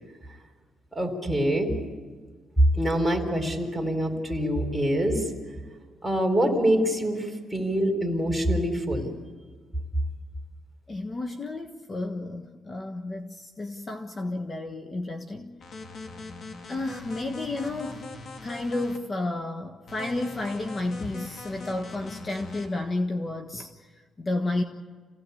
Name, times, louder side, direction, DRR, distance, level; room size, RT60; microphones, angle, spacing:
voice 1, 0.9-1.7 2.7-5.2 6.0-7.3 7.5-9.1, equal, 5° right, 3 dB, 4.4 m, -25 dB
voice 2, 10.9-15.6 16.7-18.1 18.4-24.6, left 2 dB, 30° left, 5 dB, 1.4 m, -32 dB
sound 1, 15.6-19.0 19.9-22.7, left 3 dB, 55° left, 3.2 m, -41 dB
27.5 x 17.0 x 8.5 m, 1.5 s
cardioid pair, 90°, 0 cm